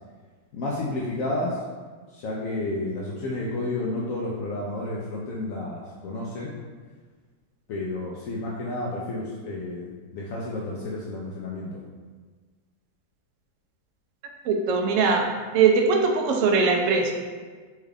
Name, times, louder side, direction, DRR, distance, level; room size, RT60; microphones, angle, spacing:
voice 1, 0.5-1.6 2.1-6.5 7.7-11.8, left 2 dB, 75° left, -4 dB, 0.7 m, -31 dB
voice 2, 14.5-15.3 15.5-17.1, right 5 dB, 80° right, 2 dB, 0.7 m, -21 dB
4.4 x 2.3 x 3.3 m, 1.5 s
omnidirectional pair, 1.9 m